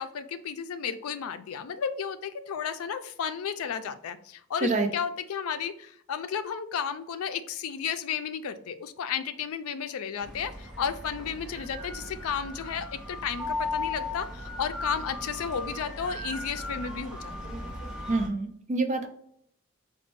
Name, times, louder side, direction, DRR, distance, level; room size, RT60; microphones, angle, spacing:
voice 1, 0.0-17.3, left 7 dB, 85° left, 10 dB, 0.4 m, -33 dB
sound 1, 10.2-18.3, left 2 dB, 5° right, 0.8 m, -37 dB
voice 2, 18.1-19.1, right 3 dB, 35° right, 6 dB, 0.4 m, -26 dB
4.1 x 2.1 x 3.0 m, 0.69 s
head